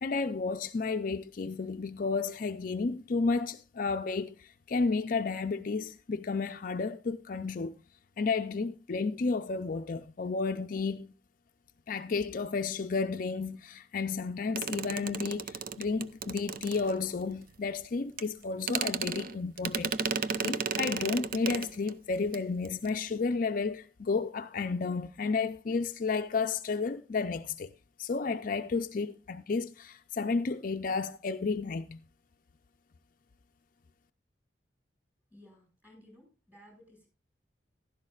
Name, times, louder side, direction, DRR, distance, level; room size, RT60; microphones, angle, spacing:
voice 1, 0.0-7.8 8.2-11.1 11.9-27.7 28.0-32.0, left 4 dB, 50° left, 0.5 m, -32 dB
sound 1, 14.6-17.3 18.2-18.3 18.6-21.9 22.2-22.4 22.6-22.9, right 6 dB, 50° right, 0.5 m, -34 dB
voice 2, 35.3-37.1, left 1 dB, 10° right, 5.6 m, -57 dB
15.0 x 12.0 x 2.4 m
head